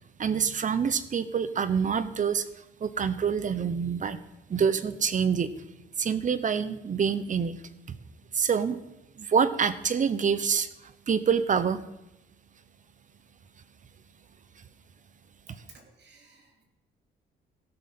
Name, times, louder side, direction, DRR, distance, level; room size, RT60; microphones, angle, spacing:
voice 1, 0.2-2.5 2.8-4.2 4.5-5.6 6.0-7.6 7.9-8.0 8.3-8.8 9.2-11.8, right 6 dB, 40° right, 14 dB, 0.9 m, -26 dB
voice 2, 15.5-16.6, right 4 dB, 60° right, 2 dB, 3.0 m, -55 dB
15.0 x 6.5 x 5.6 m, 0.93 s
cardioid pair, 90°, 20 cm